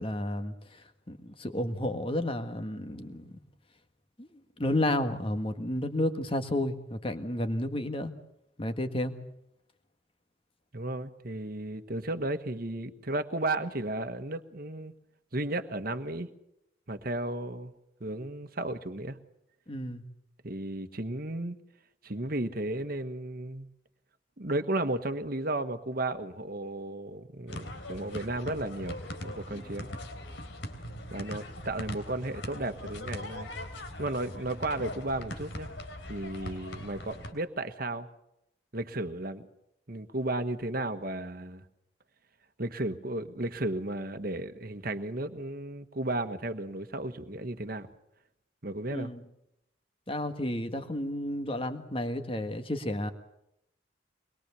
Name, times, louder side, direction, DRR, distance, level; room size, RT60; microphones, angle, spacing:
voice 1, 0.0-3.4 4.2-8.1 8.6-9.1 19.7-20.0 29.5-29.7 48.9-49.2 50.1-53.1, left 1 dB, 30° left, 8 dB, 1.7 m, -32 dB
voice 2, 10.7-14.9 15.3-16.3 16.9-17.7 18.0-19.2 20.4-21.6 22.0-23.7 24.4-29.0 29.2-29.9 31.1-33.5 34.0-35.7 36.1-38.1 38.7-39.5 39.9-41.6 42.6-47.9 48.6-49.1, right 2 dB, 50° right, 9 dB, 1.4 m, -34 dB
sound 1, 27.5-37.3, left 1 dB, 85° left, 3.3 m, -40 dB
23.5 x 22.0 x 7.0 m, 0.82 s
head